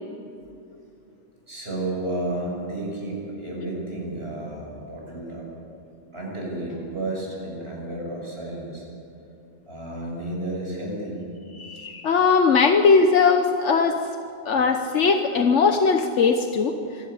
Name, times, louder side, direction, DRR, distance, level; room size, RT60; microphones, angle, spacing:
voice 1, 1.5-5.5 6.1-8.9 9.7-11.2, right 1 dB, 60° right, -3 dB, 6.8 m, -32 dB
voice 2, 11.5-14.1 14.4-16.7, left 5 dB, 75° left, 5 dB, 1.3 m, -19 dB
26.0 x 12.5 x 9.4 m, 2.7 s
omnidirectional pair, 1.2 m